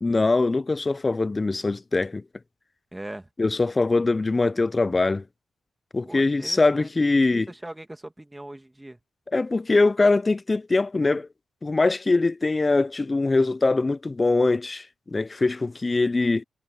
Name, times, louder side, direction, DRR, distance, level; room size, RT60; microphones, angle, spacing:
voice 1, 0.0-2.2 3.4-5.2 5.9-7.5 9.3-11.3 11.6-16.4, left 3 dB, 30° left, 0.4 m, -22 dB
voice 2, 2.9-3.3 6.0-9.0, right 1 dB, 10° right, 2.2 m, -41 dB
supercardioid pair, 60°, 0 cm